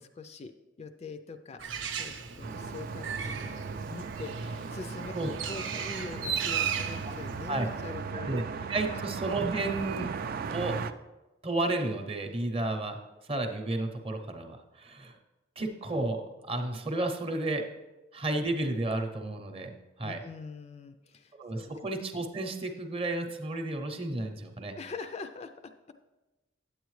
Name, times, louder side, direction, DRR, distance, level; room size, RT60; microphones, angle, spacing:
voice 1, 0.0-5.1 5.5-8.3 8.6-9.0 20.0-21.7 24.7-25.7, left 4 dB, 35° left, 8 dB, 0.3 m, -44 dB
Bird, 1.6-8.1, right 7 dB, 75° right, 0.7 m, -36 dB
sound 1, 2.4-10.9, right 5 dB, 50° right, 0.3 m, -37 dB
voice 2, 8.7-10.1 10.5-10.8 11.4-13.0 13.3-15.2 15.6-17.6 18.1-20.2 21.4-24.8, right 2 dB, 30° right, 5 dB, 0.7 m, -32 dB
8.8 x 8.0 x 3.1 m, 1.0 s
head